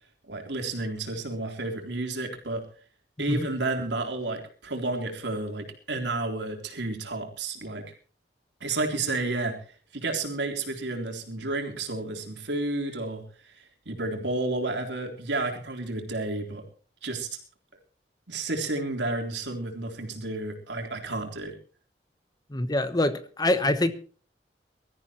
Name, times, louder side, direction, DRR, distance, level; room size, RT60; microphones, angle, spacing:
voice 1, 0.3-2.6 3.2-7.8 8.6-9.6 9.9-13.5 13.9-16.6 17.0-17.3 18.3-21.5, right 2 dB, 85° right, 3.7 m, -31 dB
voice 2, 22.5-23.9, left 1 dB, 25° left, 1.1 m, -25 dB
23.5 x 14.0 x 3.1 m
head